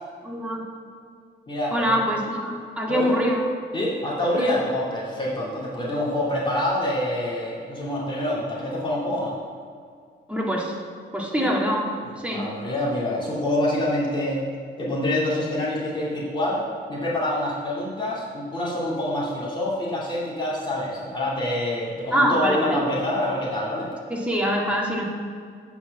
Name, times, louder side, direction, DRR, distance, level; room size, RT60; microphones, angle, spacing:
voice 1, 0.2-0.6 1.7-3.5 4.4-4.5 10.3-10.7 11.1-11.9 12.2-12.5 22.1-22.8 24.1-25.0, equal, 5° right, -2 dB, 1.9 m, -24 dB
voice 2, 1.5-1.9 2.9-3.2 3.7-9.4 11.4-11.6 12.3-14.4 14.8-23.9, left 1 dB, 25° left, -6 dB, 2.3 m, -26 dB
8.8 x 4.7 x 7.6 m, 2.2 s
cardioid pair, 105°, 19 cm